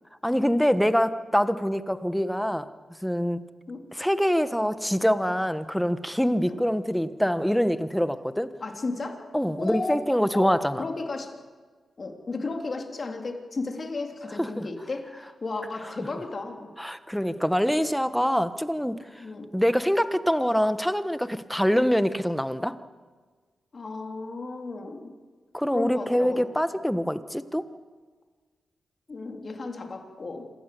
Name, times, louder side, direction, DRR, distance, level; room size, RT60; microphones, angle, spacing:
voice 1, 0.2-2.7 3.0-3.4 3.9-8.5 9.3-10.8 14.4-14.6 16.8-19.0 19.5-22.7 25.5-27.7, equal, 5° left, 11 dB, 1.3 m, -25 dB
voice 2, 8.6-9.3 9.6-10.0 10.3-11.4 12.0-16.7 19.2-19.5 23.7-25.1 25.7-26.6 29.1-30.5, left 3 dB, 45° left, 3 dB, 3.4 m, -34 dB
27.0 x 15.5 x 7.0 m, 1.5 s
cardioid pair, 60°, 0 cm